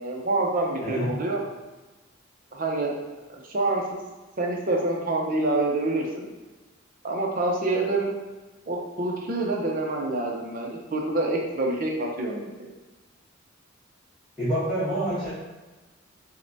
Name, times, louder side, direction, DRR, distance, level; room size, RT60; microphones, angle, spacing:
voice 1, 0.0-1.4 2.5-4.0 4.4-6.3 7.0-8.1 8.7-12.7, right 2 dB, 45° right, 0 dB, 0.6 m, -27 dB
voice 2, 14.4-15.4, right 1 dB, ahead, -16 dB, 1.1 m, -27 dB
6.3 x 2.2 x 2.7 m, 1.2 s
head